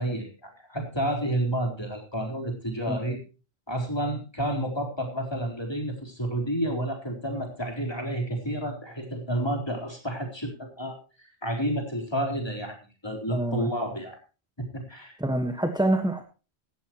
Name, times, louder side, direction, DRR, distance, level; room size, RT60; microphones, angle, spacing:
voice 1, 0.0-3.2 3.7-12.8 13.0-14.2 14.7-15.2, right 1 dB, 25° left, 1 dB, 4.3 m, -30 dB
voice 2, 13.3-13.7 15.2-16.2, right 1 dB, 5° right, 6 dB, 1.4 m, -26 dB
17.0 x 14.0 x 3.1 m, 0.34 s
omnidirectional pair, 1.1 m